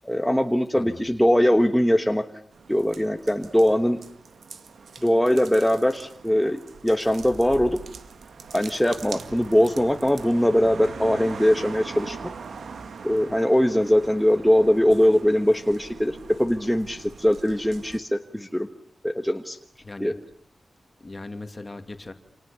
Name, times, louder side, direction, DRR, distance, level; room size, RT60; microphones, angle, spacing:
voice 1, 0.0-2.2 2.7-4.0 5.0-7.8 8.5-12.3 13.0-18.7 19.0-19.6 20.0-20.2, equal, ahead, 5 dB, 1.3 m, -21 dB
voice 2, 0.7-1.0 19.8-20.1 21.0-22.1, left 2 dB, 20° left, 8 dB, 2.5 m, -38 dB
sound 1, 2.5-18.0, right 5 dB, 75° right, 2.1 m, -42 dB
29.5 x 28.0 x 6.9 m, 0.64 s
wide cardioid pair, 170°, 0 cm